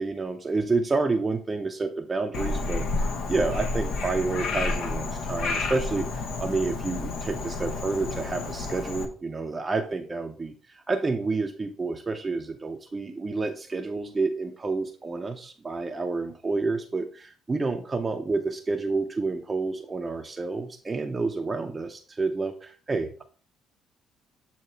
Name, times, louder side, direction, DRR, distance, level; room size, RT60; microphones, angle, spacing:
voice 1, 0.0-23.2, right 3 dB, 20° right, 4 dB, 0.6 m, -29 dB
Frog, 2.3-9.0, left 3 dB, 65° left, 0.9 m, -30 dB
7.9 x 2.8 x 4.4 m, 0.41 s
cardioid pair, 115°, 0 cm